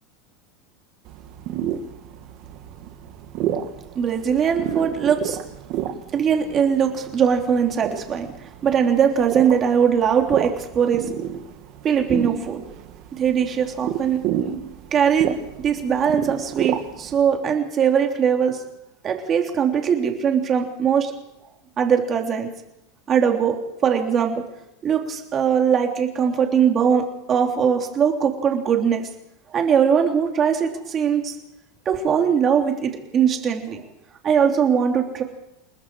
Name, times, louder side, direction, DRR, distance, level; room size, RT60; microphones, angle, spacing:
sound 1, 1.1-17.2, right 10 dB, 45° right, 2.5 m, -31 dB
voice 1, 4.0-5.4 6.1-11.1 11.8-12.6 13.1-14.2 14.9-18.6 19.0-21.1 21.8-22.5 23.1-23.6 23.8-24.4 24.8-29.0 29.5-31.3 31.9-33.8 34.2-35.2, right 7 dB, 25° right, 3 dB, 3.4 m, -21 dB
28.5 x 20.0 x 4.9 m, 0.88 s
supercardioid pair, 155°, 0 cm